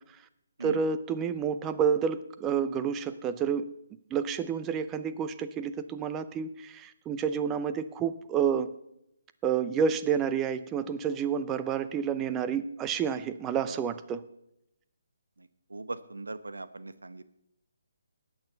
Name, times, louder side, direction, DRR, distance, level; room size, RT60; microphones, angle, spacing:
voice 1, 0.6-3.7 4.1-8.7 9.4-14.2, right 7 dB, 15° right, 11 dB, 0.7 m, -29 dB
voice 2, 15.7-17.2, right 2 dB, 75° right, 12 dB, 1.0 m, -39 dB
19.5 x 8.7 x 4.0 m, 0.81 s
figure-of-eight pair, 145°, 0 cm